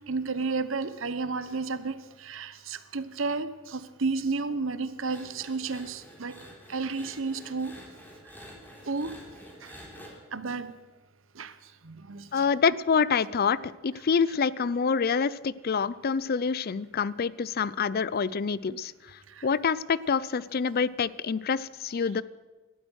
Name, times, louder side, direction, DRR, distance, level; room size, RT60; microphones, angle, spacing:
voice 1, 0.1-6.4 6.7-7.7 8.9-9.2 9.6-9.7 10.3-10.7 11.3-12.5 19.3-19.5, right 4 dB, 75° right, 13 dB, 1.0 m, -32 dB
sound 1, 5.0-10.1, equal, 10° left, 3.8 m, -48 dB
voice 2, 12.3-18.9 19.4-22.2, left 5 dB, 50° left, 20 dB, 0.5 m, -26 dB
18.0 x 12.5 x 6.3 m, 1.3 s
head